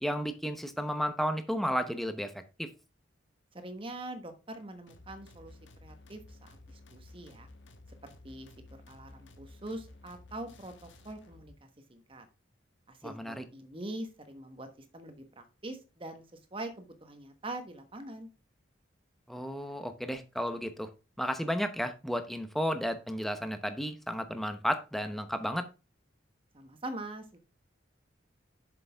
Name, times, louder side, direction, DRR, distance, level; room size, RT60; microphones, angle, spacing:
voice 1, 0.0-2.3 2.6-2.7 13.0-13.4 19.3-20.9 21.2-25.7, equal, ahead, 8 dB, 0.8 m, -33 dB
voice 2, 3.5-6.4 6.7-7.5 8.0-8.5 8.9-12.3 12.9-16.2 16.5-18.3 26.5-27.4, right 1 dB, 25° right, 7 dB, 1.2 m, -43 dB
sound 1, 4.9-11.6, left 2 dB, 70° left, 1.4 m, -54 dB
7.4 x 6.7 x 3.4 m, 0.30 s
head